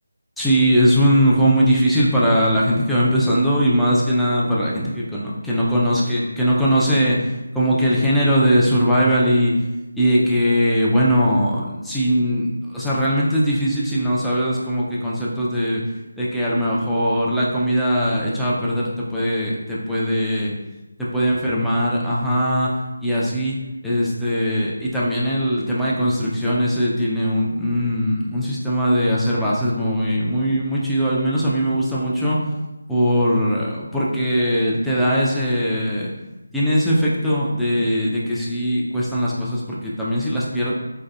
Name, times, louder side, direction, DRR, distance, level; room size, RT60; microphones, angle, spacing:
voice 1, 0.4-7.2 7.5-9.5 10.0-15.8 16.2-20.5 21.1-22.7 23.0-23.6 23.8-32.4 32.9-36.1 36.5-40.7, equal, ahead, -8 dB, 0.3 m, -20 dB
3.2 x 2.7 x 2.3 m, 1.0 s
figure-of-eight pair, 160°, 0 cm